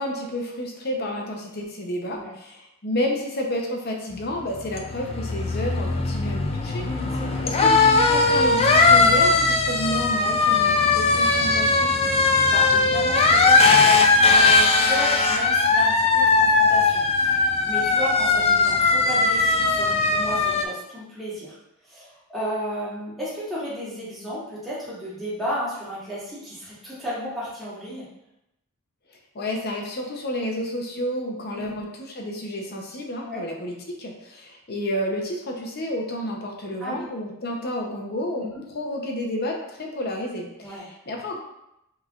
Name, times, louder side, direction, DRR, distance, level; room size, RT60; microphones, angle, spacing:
voice 1, 0.0-6.8 7.4-11.9 29.3-41.4, equal, 45° left, 1 dB, 0.7 m, -30 dB
sound 1, 4.2-20.6, left 3 dB, 25° left, 0.3 m, -19 dB
voice 2, 6.8-7.4 12.5-21.6 21.9-28.1 31.5-31.8 33.2-33.4 36.8-37.1 38.4-38.6 40.6-40.9, equal, ahead, -10 dB, 1.5 m, -33 dB
5.5 x 3.3 x 2.4 m, 0.85 s
head